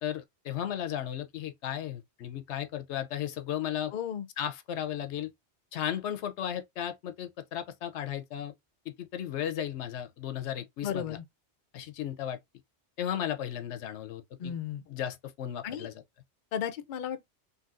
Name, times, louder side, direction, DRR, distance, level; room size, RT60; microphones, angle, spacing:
voice 1, 0.0-3.9 4.4-5.3 5.7-8.5 8.9-11.2 11.7-12.4 13.0-14.5 14.9-16.0, left 10 dB, 75° left, 0.9 m, -35 dB
voice 2, 3.9-4.3 10.8-11.2 14.4-14.8 15.6-15.9 16.5-17.2, left 9 dB, 55° left, 0.6 m, -34 dB
4.0 x 2.6 x 2.4 m
omnidirectional pair, 1.2 m